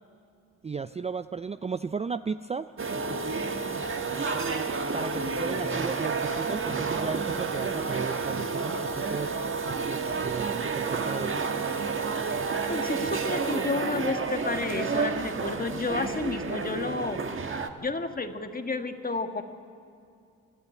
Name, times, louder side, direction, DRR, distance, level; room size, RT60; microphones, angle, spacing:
voice 1, 0.6-2.7 4.9-9.3 9.8-11.4, right 5 dB, 20° right, 12 dB, 0.4 m, -35 dB
sound 1, 2.8-17.7, right 4 dB, 40° right, 1.6 m, -30 dB
voice 2, 12.7-19.4, left 3 dB, 25° left, 7 dB, 1.6 m, -31 dB
26.5 x 12.0 x 9.4 m, 2.5 s
supercardioid pair, 55°, 32 cm